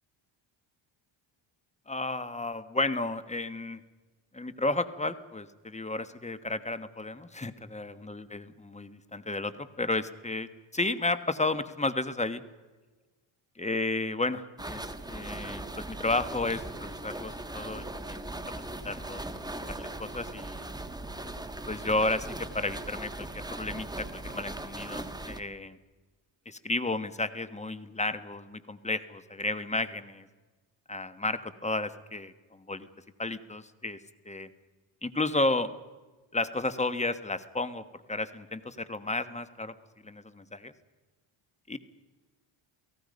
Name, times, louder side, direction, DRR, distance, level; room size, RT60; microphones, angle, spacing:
voice 1, 1.9-3.8 4.3-12.4 13.6-14.8 15.1-18.3 18.8-20.8 21.7-25.8 26.4-30.3 30.9-32.9 33.2-34.0 34.2-34.5 35.0-35.7 36.3-37.8 38.1-39.7 40.0-40.7 41.7-41.8, left 2 dB, 15° left, 13 dB, 1.3 m, -32 dB
sound 1, 14.6-25.4, right 2 dB, 10° right, 1.5 m, -39 dB
29.0 x 18.0 x 5.3 m, 1.3 s
cardioid pair, 90°, 50 cm